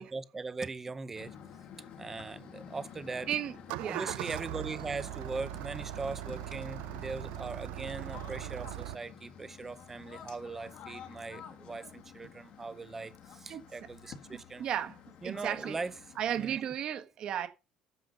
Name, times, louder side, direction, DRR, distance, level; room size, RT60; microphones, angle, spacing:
voice 1, 0.0-1.4 2.0-3.3 3.8-14.7 15.2-16.0 16.3-16.6, right 3 dB, 15° right, 0.6 m, -40 dB
sound 1, 1.1-16.5, left 8 dB, 45° left, 1.6 m, -50 dB
Engine starting, 3.5-9.0, right 17 dB, 85° right, 0.5 m, -40 dB
voice 2, 3.8-4.1 13.5-13.6 14.3-14.9 15.2-15.8 16.2-17.5, right 10 dB, 40° right, 1.4 m, -34 dB
9.4 x 7.0 x 5.2 m
cardioid pair, 175°, 2 cm